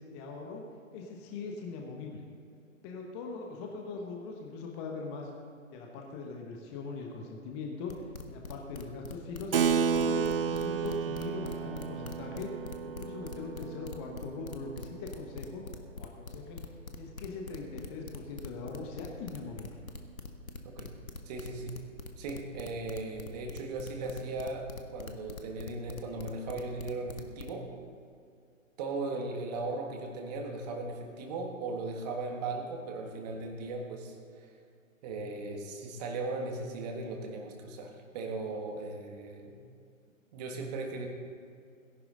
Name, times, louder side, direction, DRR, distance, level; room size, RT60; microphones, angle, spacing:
voice 1, 0.1-0.6 0.9-2.2 2.8-5.3 5.7-15.6 15.9-19.8, left 3 dB, 20° left, 1 dB, 1.1 m, -41 dB
sound 1, 7.9-27.5, left 4 dB, 80° left, 1.4 m, -44 dB
Keyboard (musical), 9.5-15.5, right 6 dB, 45° right, 0.5 m, -32 dB
voice 2, 21.3-21.8 22.2-27.7 28.8-34.5 35.0-39.6 40.3-41.1, right 3 dB, 30° right, 2 dB, 1.7 m, -37 dB
18.0 x 11.0 x 3.9 m, 2.4 s
figure-of-eight pair, 130°, 41 cm